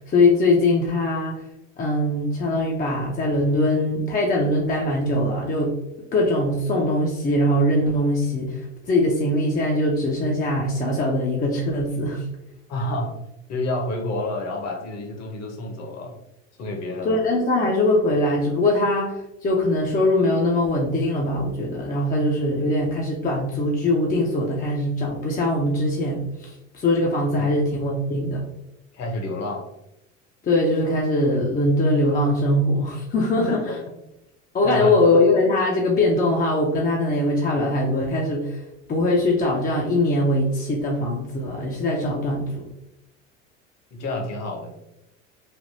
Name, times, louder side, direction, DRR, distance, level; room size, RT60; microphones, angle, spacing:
voice 1, 0.1-1.4 1.8-5.7 6.1-8.6 8.9-12.2 17.0-28.4 30.4-33.6 34.5-38.6 38.9-42.7, left 1 dB, 25° left, -2 dB, 0.5 m, -22 dB
voice 2, 12.7-13.1 13.5-16.2 16.6-17.2 27.4-27.5 28.9-29.6 33.5-33.9 34.6-35.0 43.9-44.7, left 1 dB, 45° left, 2 dB, 0.9 m, -29 dB
3.4 x 2.2 x 2.6 m, 0.87 s
hypercardioid pair, 85°, 38 cm